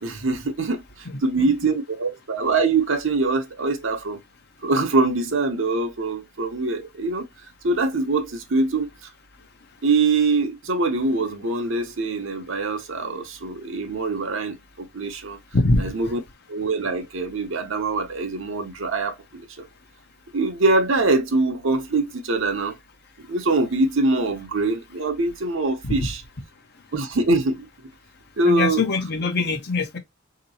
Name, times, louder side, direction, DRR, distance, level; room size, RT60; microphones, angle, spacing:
voice 1, 0.0-4.2 4.6-7.3 7.6-8.9 9.8-15.4 15.8-16.2 16.5-19.7 20.3-22.7 23.2-26.2 26.9-27.7 28.4-28.8, right 3 dB, 65° right, 0.8 m, -23 dB
voice 2, 15.5-15.9 25.8-26.1 28.4-30.0, left 3 dB, 50° left, 0.7 m, -23 dB
3.9 x 2.9 x 2.7 m
head